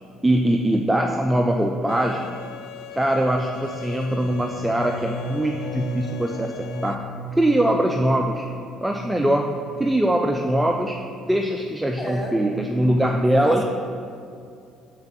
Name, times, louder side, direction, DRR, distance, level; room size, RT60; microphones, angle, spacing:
voice 1, 0.2-2.3 2.9-7.0 7.4-8.5 8.8-9.5 9.8-11.0 11.3-13.6, right 1 dB, 10° right, 2 dB, 0.3 m, -22 dB
Bowed string instrument, 1.9-6.9, left 10 dB, 85° left, 0.3 m, -40 dB
sound 1, 4.1-10.0 10.3-10.8 11.1-11.5, right 1 dB, 45° left, 0.6 m, -35 dB
voice 2, 12.0-12.4 13.4-13.6, equal, 10° left, 1 dB, 0.9 m, -31 dB
4.3 x 3.9 x 5.6 m, 2.4 s
supercardioid pair, 85°, 0 cm